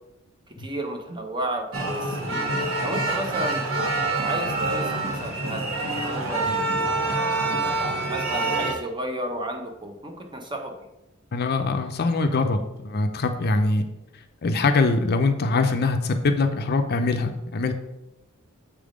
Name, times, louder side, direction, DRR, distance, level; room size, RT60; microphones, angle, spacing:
voice 1, 0.5-2.5 2.8-3.6 4.2-7.1 7.8-10.8, right 1 dB, 20° right, 4 dB, 0.8 m, -33 dB
sound 1, 1.7-8.7, right 2 dB, 70° right, 1.4 m, -26 dB
voice 2, 11.3-13.8 14.4-17.7, left 3 dB, 45° left, 7 dB, 0.5 m, -23 dB
7.3 x 3.5 x 5.0 m, 0.92 s
head